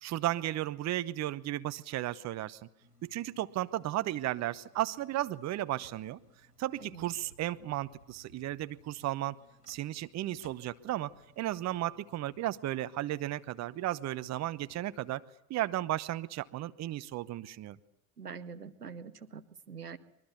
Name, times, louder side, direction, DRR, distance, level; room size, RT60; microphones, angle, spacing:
voice 1, 0.0-2.6 3.0-6.2 6.6-9.4 9.7-15.2 15.5-17.8, right 14 dB, 35° right, 14 dB, 1.0 m, -34 dB
sound 1, 2.8-15.2, equal, 90° left, 2.1 m, -63 dB
voice 2, 18.2-20.0, right 6 dB, 85° right, 12 dB, 1.0 m, -45 dB
24.5 x 22.5 x 8.4 m, 0.82 s
figure-of-eight pair, 65°, 45 cm